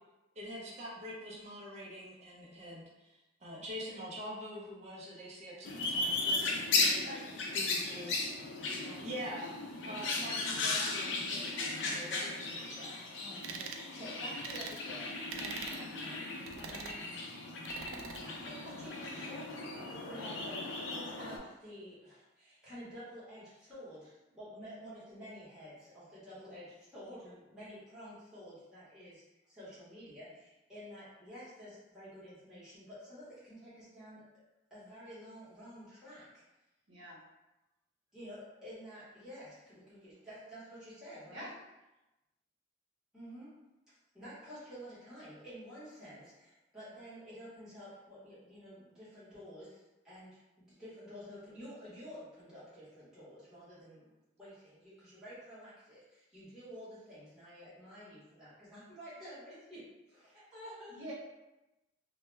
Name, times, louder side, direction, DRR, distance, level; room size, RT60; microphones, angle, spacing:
voice 1, 0.4-7.0 7.5-8.3 9.0-12.9, equal, 35° right, -4 dB, 0.5 m, -45 dB
sound 1, 5.6-21.4, left 3 dB, 65° left, 0.4 m, -36 dB
voice 2, 7.0-7.4 8.1-8.3 36.9-37.2 41.3-41.5 60.9-61.1, equal, 60° right, -6 dB, 0.8 m, -47 dB
voice 3, 8.8-9.1 9.8-10.0 13.2-17.0 18.2-19.5 20.0-34.2 34.7-36.4 38.1-41.5 43.1-43.5 44.1-50.4 50.8-54.1 54.4-61.0, equal, 5° right, -13 dB, 1.0 m, -50 dB
sound 2, 13.4-13.8 14.4-14.8 15.3-15.8 16.5-17.0 17.6-18.2, right 5 dB, 85° right, 0.3 m, -43 dB
2.2 x 2.1 x 3.1 m, 0.99 s
head